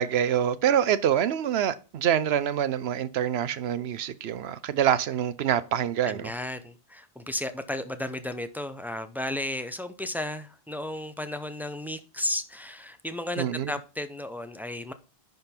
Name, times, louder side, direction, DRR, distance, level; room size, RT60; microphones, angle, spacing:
voice 1, 0.0-6.3 13.4-13.7, right 9 dB, 80° right, 0.9 m, -26 dB
voice 2, 6.0-14.9, left 1 dB, ahead, 0.5 m, -34 dB
10.5 x 4.0 x 4.3 m
omnidirectional pair, 1.1 m